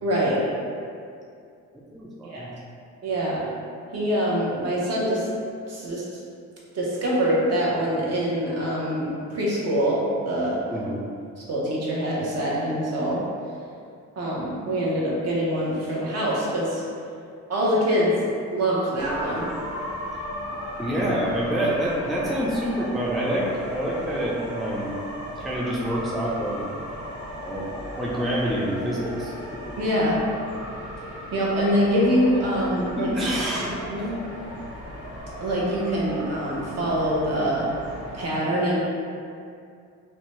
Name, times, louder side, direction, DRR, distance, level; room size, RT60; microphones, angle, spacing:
voice 1, 0.0-0.4 2.2-2.5 3.0-3.5 3.9-5.3 5.7-6.0 6.7-10.6 11.5-13.2 14.2-16.8 17.5-19.5 29.8-30.2 31.3-33.1 33.9-34.2 35.4-37.7 38.1-38.8, equal, 55° right, -5 dB, 0.8 m, -24 dB
voice 2, 1.9-2.5 10.7-11.0 20.8-24.9 25.4-26.6 27.4-27.6 28.0-29.3 33.0-33.7, equal, ahead, -5 dB, 0.3 m, -27 dB
sound 1, 19.0-38.2, equal, 70° right, 1.3 m, -36 dB
2.6 x 2.2 x 3.0 m, 2.4 s
cardioid pair, 90°, 30 cm